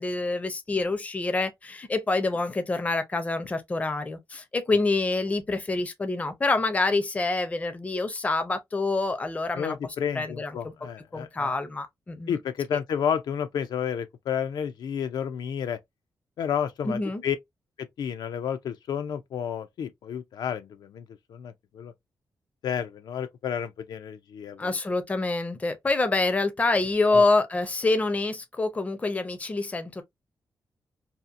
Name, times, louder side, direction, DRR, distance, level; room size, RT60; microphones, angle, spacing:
voice 1, 0.0-10.7 11.1-12.4 12.7-12.8 16.8-17.2 24.6-30.0, left 3 dB, 20° left, 0.4 m, -26 dB
voice 2, 9.5-11.5 12.3-15.8 16.4-17.4 18.0-21.0 21.3-21.9 22.6-24.8 27.1-27.3, left 8 dB, 80° left, 0.4 m, -31 dB
2.7 x 2.4 x 2.4 m
wide cardioid pair, 150°, 7 cm